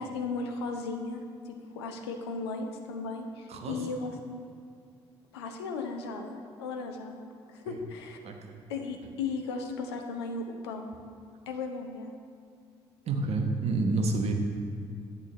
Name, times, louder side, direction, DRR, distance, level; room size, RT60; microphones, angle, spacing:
voice 1, 0.0-4.2 5.3-8.2 8.7-10.9 11.5-12.1, left 4 dB, 75° left, 4 dB, 0.8 m, -36 dB
voice 2, 3.5-3.8 7.7-7.8 8.2-8.6 13.1-14.3, right 3 dB, 50° right, 3 dB, 1.1 m, -29 dB
11.0 x 8.4 x 3.0 m, 2.3 s
figure-of-eight pair, 45°, 14 cm